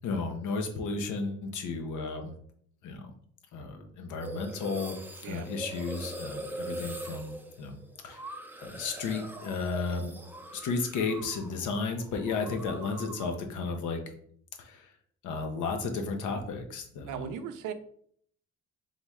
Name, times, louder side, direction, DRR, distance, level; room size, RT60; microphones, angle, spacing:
voice 1, 0.0-2.3 2.8-3.1 3.5-5.0 5.2-7.8 8.0-8.2 8.6-10.2 10.5-14.0 14.6-14.9 15.2-17.3, left 4 dB, 80° left, 5 dB, 0.8 m, -33 dB
sound 1, 4.2-11.6 11.9-13.4, right 1 dB, 5° right, 0.4 m, -42 dB
voice 2, 17.0-17.7, right 8 dB, 90° right, 9 dB, 0.5 m, -37 dB
3.9 x 3.1 x 3.5 m, 0.63 s
cardioid pair, 90°, 30 cm